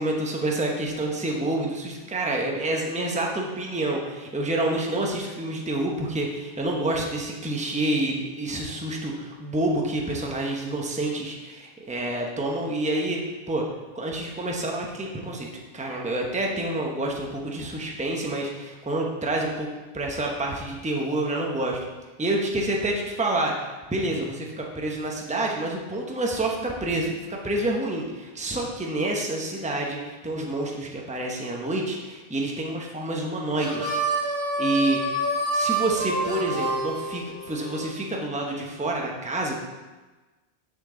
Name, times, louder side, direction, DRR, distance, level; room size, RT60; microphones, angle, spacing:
voice 1, 0.0-13.2 13.5-13.6 13.9-15.5 15.7-19.7 19.9-21.8 22.2-34.0 34.6-35.0 35.5-39.5, right 1 dB, 5° right, -1 dB, 0.8 m, -28 dB
Harmonica, 33.5-37.8, right 2 dB, 30° right, 2.4 m, -27 dB
6.7 x 5.9 x 3.8 m, 1.2 s
omnidirectional pair, 1.2 m